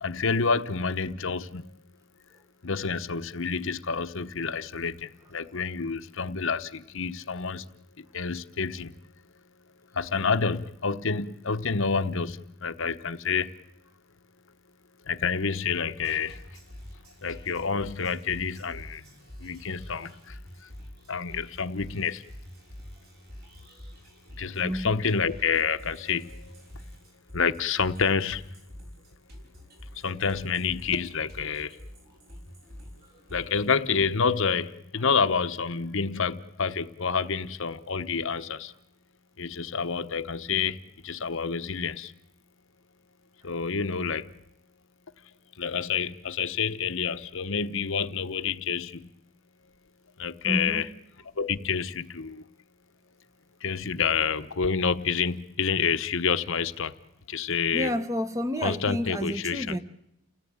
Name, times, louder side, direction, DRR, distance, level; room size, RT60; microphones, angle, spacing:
voice 1, 0.0-1.7 2.6-7.6 8.0-8.9 9.9-13.5 15.0-16.6 17.2-19.0 19.4-20.7 21.1-22.2 24.3-26.6 27.3-28.5 29.9-31.8 33.3-38.7 39.4-42.1 43.4-44.3 45.5-49.1 50.2-50.9 51.4-52.4 53.6-56.9 57.3-57.9 58.6-59.8, left 5 dB, 60° left, 1.0 m, -28 dB
sound 1, 16.0-33.7, equal, 50° right, 6.0 m, -47 dB
voice 2, 24.6-25.0 50.4-50.8 57.7-59.8, equal, 15° right, 1.1 m, -30 dB
30.0 x 17.5 x 8.8 m
head